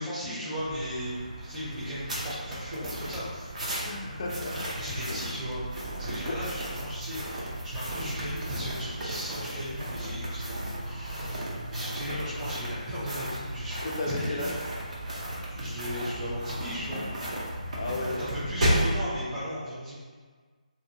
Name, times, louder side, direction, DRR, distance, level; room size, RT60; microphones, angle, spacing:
voice 1, 0.0-3.8 4.7-5.6 6.0-14.5 15.5-17.5 18.2-20.0, equal, 10° right, -12 dB, 0.7 m, -36 dB
sound 1, 0.6-19.0, right 1 dB, 55° right, 0.7 m, -34 dB
voice 2, 3.8-4.8 5.1-5.2 6.2-6.4 7.9-8.0 13.8-14.5 17.7-18.3, left 2 dB, 40° left, -1 dB, 0.4 m, -34 dB
2.6 x 2.5 x 2.7 m, 1.5 s
figure-of-eight pair, 160°, 4 cm